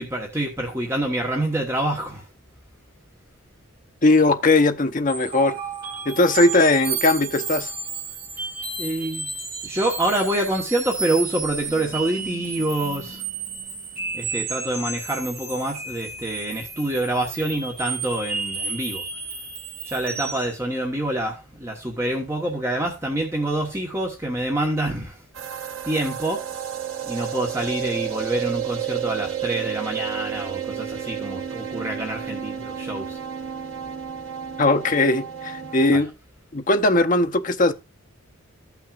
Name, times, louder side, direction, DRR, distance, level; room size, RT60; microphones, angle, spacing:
voice 1, 0.0-2.3 8.8-9.3 9.6-13.2 14.1-19.0 19.8-25.2 25.8-26.4 27.0-33.2 35.9-36.0, right 1 dB, 10° right, 1.1 m, -26 dB
voice 2, 4.0-5.6 6.1-7.7 34.6-36.1 36.5-37.7, left 2 dB, 35° left, 0.6 m, -19 dB
sound 1, 5.1-20.6, right 5 dB, 40° right, 2.0 m, -32 dB
sound 2, 25.3-35.9, right 9 dB, 65° right, 1.1 m, -31 dB
14.5 x 5.9 x 2.4 m
head